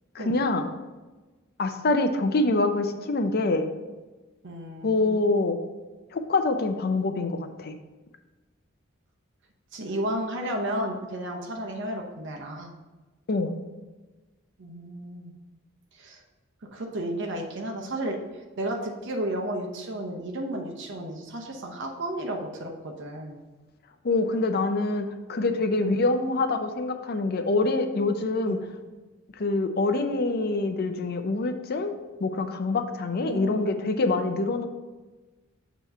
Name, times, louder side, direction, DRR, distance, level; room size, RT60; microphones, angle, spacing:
voice 1, 0.1-0.7 1.6-3.7 4.8-5.6 6.1-7.8 13.3-13.6 24.0-28.6 29.3-31.9 32.2-34.7, left 2 dB, 50° left, 7 dB, 0.6 m, -25 dB
voice 2, 4.4-5.2 9.7-12.7 14.6-15.4 15.9-16.2 16.7-18.2 18.6-23.4 25.8-26.0 28.4-28.6 33.2-34.0, right 1 dB, 60° right, 1 dB, 0.8 m, -33 dB
6.9 x 3.0 x 5.4 m, 1.2 s
head